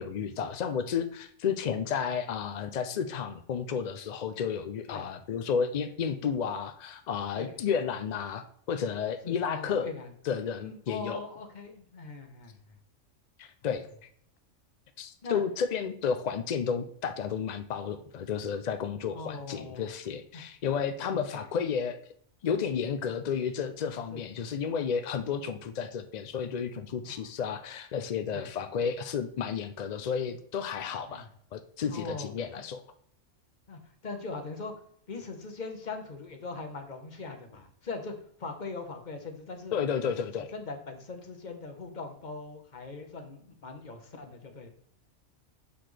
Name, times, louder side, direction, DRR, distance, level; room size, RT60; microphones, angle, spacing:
voice 1, 0.0-9.9 10.2-11.2 13.4-13.9 15.0-22.0 22.4-32.8 39.7-40.5, left 7 dB, 65° left, 9 dB, 0.4 m, -32 dB
voice 2, 9.2-10.1 10.6-12.5 15.2-15.4 19.1-19.9 20.3-20.4 21.1-21.5 22.8-22.9 24.1-24.2 27.0-27.3 28.3-28.5 31.1-31.3 31.9-32.3 33.7-34.7 35.1-38.1 38.4-39.8 40.4-44.7, left 3 dB, 40° left, 4 dB, 1.1 m, -41 dB
6.9 x 5.8 x 3.2 m, 0.64 s
omnidirectional pair, 1.3 m